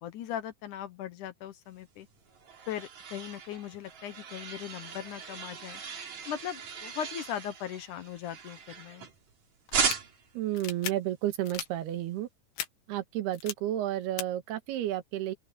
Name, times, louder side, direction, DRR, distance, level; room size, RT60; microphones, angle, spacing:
voice 1, 0.0-2.1 2.7-5.8 6.3-9.1, left 10 dB, 70° left, 2.0 m, -39 dB
sound 1, 2.0-9.3 9.7-10.4, right 6 dB, 45° right, 3.9 m, -37 dB
sound 2, 9.7-10.0 10.6-10.9 11.4-11.7 12.6-12.7 13.3-13.5 14.2-14.3, left 11 dB, 90° left, 3.9 m, -36 dB
voice 2, 10.4-12.3 12.9-15.3, right 13 dB, 75° right, 3.5 m, -31 dB
open air
omnidirectional pair, 4.7 m